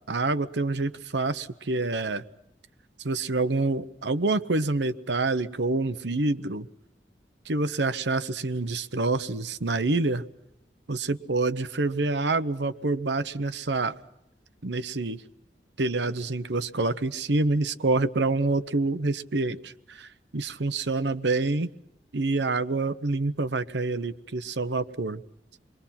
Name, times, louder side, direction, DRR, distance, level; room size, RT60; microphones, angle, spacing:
voice 1, 0.1-2.2 3.0-6.7 7.5-10.2 10.9-13.9 14.6-15.2 15.8-21.7 22.1-25.2, right 3 dB, 80° right, 12 dB, 1.0 m, -27 dB
28.5 x 22.5 x 5.8 m, 0.83 s
head